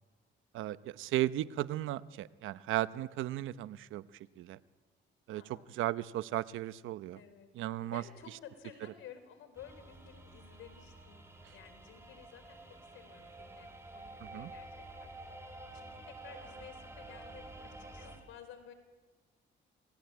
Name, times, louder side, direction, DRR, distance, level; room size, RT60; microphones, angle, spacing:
voice 1, 0.5-4.0 4.4-4.6 5.3-5.4 5.7-7.2 7.6-8.0 14.2-14.5, right 14 dB, 85° right, 15 dB, 0.9 m, -35 dB
voice 2, 5.3-5.7 7.1-7.5 7.9-11.2 11.5-15.1 15.7-18.7, left 9 dB, 85° left, 7 dB, 4.1 m, -54 dB
sound 1, 9.5-18.2, right 2 dB, 15° right, 5.3 m, -50 dB
27.5 x 18.5 x 9.5 m, 1.3 s
cardioid pair, 90°, 20 cm